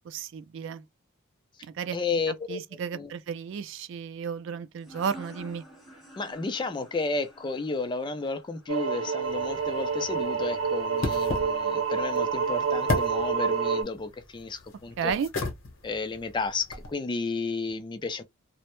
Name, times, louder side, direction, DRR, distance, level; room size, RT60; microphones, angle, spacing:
voice 1, 0.1-0.8 1.8-2.0 2.5-5.6 15.0-15.3, right 6 dB, 60° right, 0.3 m, -33 dB
voice 2, 1.9-2.6 2.9-3.1 6.2-15.1 15.8-18.2, left 3 dB, 20° left, 0.3 m, -32 dB
sound 1, 4.8-10.2, equal, ahead, 0.9 m, -50 dB
sound 2, 8.7-13.8, right 5 dB, 80° right, 0.7 m, -28 dB
sound 3, 9.2-16.9, left 3 dB, 75° left, 0.8 m, -36 dB
2.0 x 2.0 x 2.9 m
head